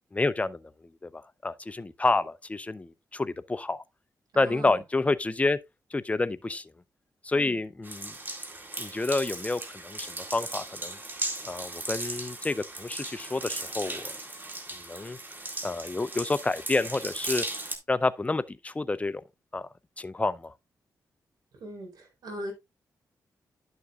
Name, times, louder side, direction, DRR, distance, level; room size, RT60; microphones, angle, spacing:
voice 1, 0.1-0.7 1.0-3.8 4.3-5.6 5.9-6.7 7.2-8.1 8.8-11.0 11.4-14.2 14.8-15.2 15.6-17.4 17.9-19.2 19.5-19.7 20.0-20.5, left 3 dB, 20° left, 0.6 m, -29 dB
voice 2, 4.3-4.8 7.3-7.6 21.6-22.5, right 1 dB, 75° right, 4.0 m, -40 dB
sound 1, 7.8-17.8, right 2 dB, 30° right, 2.1 m, -37 dB
11.0 x 6.6 x 2.4 m
cardioid pair, 70°, 7 cm